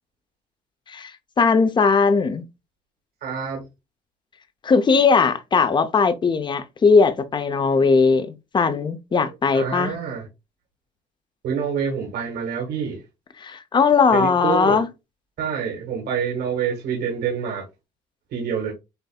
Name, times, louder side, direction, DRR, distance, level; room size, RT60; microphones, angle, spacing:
voice 1, 1.4-2.4 4.6-9.9 13.4-14.9, left 5 dB, 25° left, 0.7 m, -19 dB
voice 2, 3.2-3.6 9.5-10.3 11.4-13.0 14.1-14.8 15.4-17.6 18.3-18.7, right 7 dB, 75° right, 1.8 m, -26 dB
7.8 x 2.6 x 2.3 m
cardioid pair, 110°, 17 cm